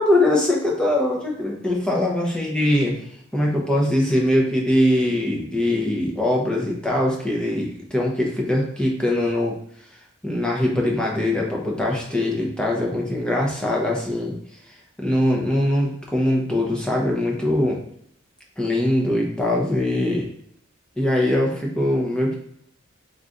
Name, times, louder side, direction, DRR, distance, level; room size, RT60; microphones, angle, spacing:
voice 1, 0.0-3.0 3.3-9.6 10.2-14.4 15.0-17.8 18.6-20.3 21.0-22.4, left 1 dB, 5° left, -2 dB, 0.8 m, -22 dB
3.8 x 3.1 x 3.8 m, 0.70 s
head